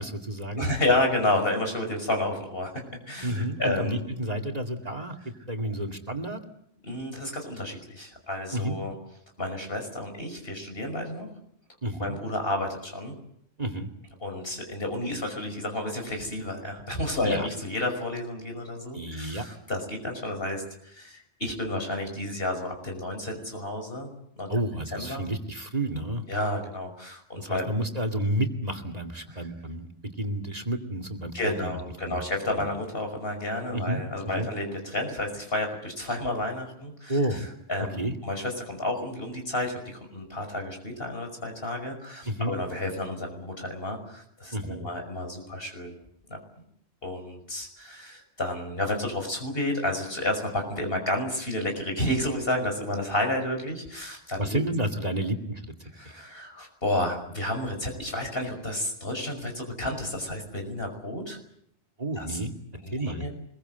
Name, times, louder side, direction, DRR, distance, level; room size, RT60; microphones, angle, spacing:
voice 1, 0.0-0.7 3.2-6.4 8.5-8.7 11.8-12.2 13.6-13.9 17.2-17.5 18.9-19.5 24.5-26.2 27.4-32.2 32.6-32.7 33.7-34.5 37.1-37.4 38.0-38.1 42.3-42.5 44.5-44.9 54.4-55.7 62.0-63.2, right 1 dB, 35° right, 8 dB, 2.4 m, -31 dB
voice 2, 0.6-4.0 6.8-8.9 9.4-11.3 11.9-13.2 14.2-24.1 24.4-24.5 24.9-25.2 26.3-27.7 29.3-29.4 31.3-37.2 37.7-45.9 46.3-46.4 47.0-54.6 55.9-61.4 62.2-62.4 62.8-63.3, left 1 dB, 60° left, 4 dB, 6.0 m, -31 dB
25.0 x 22.0 x 8.0 m, 0.72 s
omnidirectional pair, 1.1 m